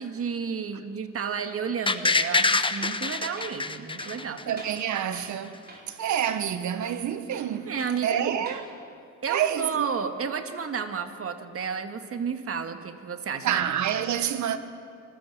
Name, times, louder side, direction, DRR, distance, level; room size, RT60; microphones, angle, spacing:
voice 1, 0.0-4.4 7.7-8.4 9.2-13.6, right 6 dB, 50° right, 1.8 m, -32 dB
sound 1, 1.9-4.8 5.1-5.2, left 3 dB, 15° left, 0.9 m, -25 dB
Tools, 2.2-2.4 2.8-3.1 3.4-3.5 4.0-4.8 5.1-5.4 5.7-6.0 6.2-6.4 6.8-8.0 8.4-8.7, right 2 dB, 30° right, 4.7 m, -46 dB
voice 2, 4.5-5.6 5.9-7.7 8.0-8.6 9.3-9.9 13.4-14.6, right 9 dB, 70° right, 1.4 m, -27 dB
25.5 x 15.5 x 7.3 m
cardioid pair, 90°, 30 cm